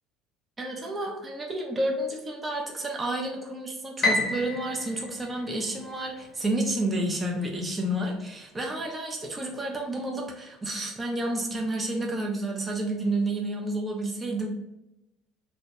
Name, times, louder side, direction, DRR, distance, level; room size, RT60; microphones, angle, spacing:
voice 1, 0.6-14.5, right 1 dB, 25° right, 0 dB, 0.5 m, -30 dB
Piano, 4.0-6.3, left 2 dB, 45° left, 0.7 m, -29 dB
2.2 x 2.0 x 2.8 m, 0.88 s
figure-of-eight pair, 65°, 0 cm